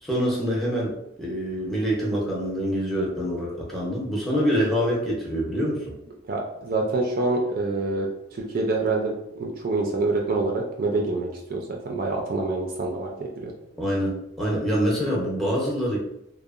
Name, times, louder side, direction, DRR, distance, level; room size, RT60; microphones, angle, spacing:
voice 1, 0.0-5.9 13.8-16.0, equal, ahead, -4 dB, 0.6 m, -25 dB
voice 2, 6.3-13.5, right 2 dB, 45° right, 0 dB, 0.4 m, -26 dB
2.7 x 2.0 x 2.4 m, 0.82 s
head